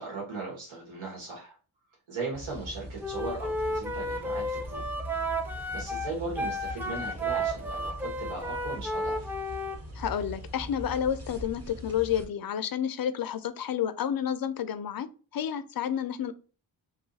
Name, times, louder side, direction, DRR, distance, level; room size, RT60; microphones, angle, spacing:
voice 1, 0.0-1.5 2.1-4.8 5.7-9.3, right 3 dB, 75° right, 1.4 m, -38 dB
sound 1, 2.3-12.2, equal, 30° right, 1.2 m, -42 dB
Wind instrument woodwind instrument, 3.0-9.8, equal, 5° right, 0.5 m, -33 dB
voice 2, 10.0-16.3, left 9 dB, 50° left, 0.5 m, -30 dB
2.6 x 2.4 x 3.9 m
cardioid pair, 45°, 48 cm